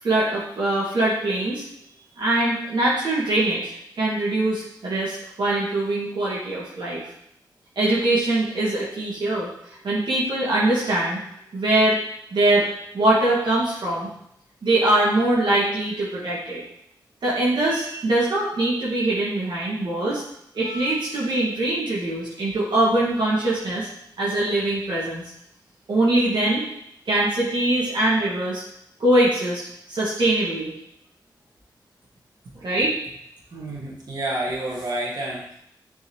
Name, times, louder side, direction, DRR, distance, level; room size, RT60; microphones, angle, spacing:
voice 1, 0.0-1.6 2.2-7.0 7.8-11.2 11.5-12.0 12.3-12.7 12.9-14.1 14.6-16.6 17.2-20.2 20.5-23.9 24.2-25.2 25.9-26.6 27.1-28.6 29.0-29.6 29.9-30.7 32.6-32.9, right 1 dB, 70° right, -7 dB, 2.0 m, -22 dB
voice 2, 33.5-35.6, right 1 dB, 55° right, -6 dB, 2.1 m, -29 dB
7.0 x 4.5 x 3.1 m, 0.74 s
cardioid pair, 60°, 8 cm